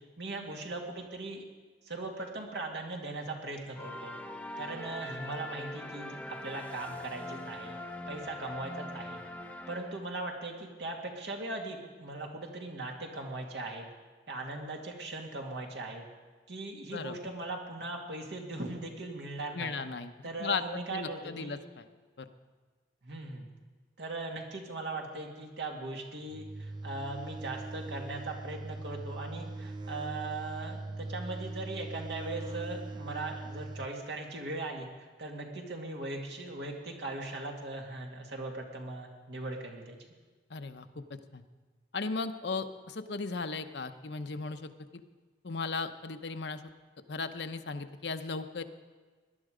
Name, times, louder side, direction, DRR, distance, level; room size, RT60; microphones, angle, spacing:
voice 1, 0.2-1.4 1.8-4.1 4.6-7.8 8.1-9.2 9.7-13.9 14.3-16.0 16.5-19.8 20.2-21.6 23.0-23.5 24.0-40.0, right 2 dB, 70° right, 1 dB, 2.3 m, -39 dB
sound 1, 3.8-10.3, left 1 dB, 10° left, 0.7 m, -42 dB
voice 2, 19.5-21.8 22.2-22.3 40.5-41.4 41.9-45.0 45.4-46.6 47.1-48.6, left 4 dB, 65° left, 9 dB, 0.8 m, -36 dB
sound 2, 26.3-33.9, right 2 dB, 25° right, 0.3 m, -41 dB
18.5 x 11.5 x 5.0 m, 1.4 s
head